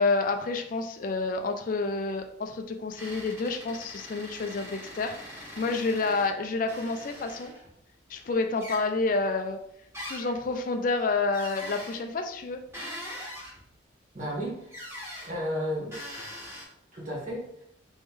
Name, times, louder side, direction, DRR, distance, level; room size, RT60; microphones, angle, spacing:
voice 1, 0.0-7.5 8.1-9.6 10.1-12.6, left 3 dB, 45° left, 5 dB, 0.3 m, -29 dB
sound 1, 3.0-6.3 6.7-7.7 8.6-8.8 9.9-10.5 11.3-12.0 12.7-13.6 14.7-15.3 15.9-16.6, equal, 15° right, 1.3 m, -42 dB
voice 2, 14.1-14.8 15.2-15.9 16.3-16.4 16.9-17.6, equal, 40° right, -5 dB, 1.5 m, -33 dB
3.2 x 3.1 x 3.5 m, 0.75 s
head